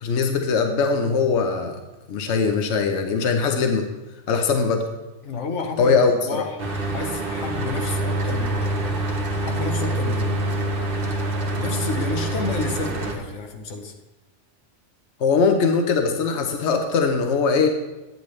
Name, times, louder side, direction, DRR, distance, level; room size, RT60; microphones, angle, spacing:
voice 1, 0.0-1.8 2.1-3.8 4.3-4.8 5.8-6.4 15.2-17.7, left 5 dB, 75° left, 4 dB, 1.1 m, -21 dB
voice 2, 5.2-6.7 6.9-10.5 11.6-13.9, left 3 dB, 90° left, 4 dB, 1.3 m, -31 dB
Mechanical fan, 6.6-13.2, right 2 dB, 50° right, 1.3 m, -25 dB
10.0 x 9.4 x 3.2 m, 1.1 s
omnidirectional pair, 1.2 m